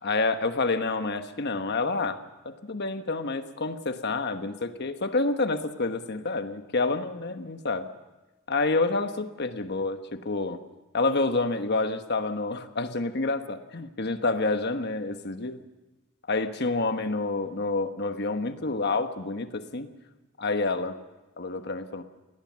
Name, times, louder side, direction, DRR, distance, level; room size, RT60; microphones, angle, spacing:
voice 1, 0.0-7.9 8.5-10.6 10.9-15.6 16.3-19.9 20.4-21.0 21.4-22.0, left 3 dB, 50° left, 9 dB, 1.2 m, -28 dB
20.0 x 17.5 x 7.5 m, 1.1 s
head